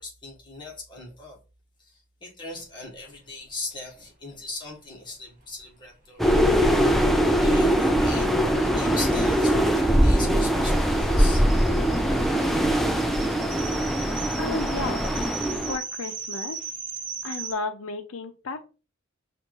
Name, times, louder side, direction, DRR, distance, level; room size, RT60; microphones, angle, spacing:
voice 1, 0.0-1.4 1.8-6.4 7.4-8.3 8.7-11.4, left 3 dB, 25° left, 1.3 m, -39 dB
sound 1, 6.2-15.8, equal, ahead, 0.4 m, -22 dB
sound 2, 9.3-17.5, right 5 dB, 45° right, 1.1 m, -38 dB
voice 2, 14.4-15.2 15.6-16.7 17.2-18.6, left 3 dB, 80° left, 0.6 m, -33 dB
5.7 x 2.5 x 3.0 m
head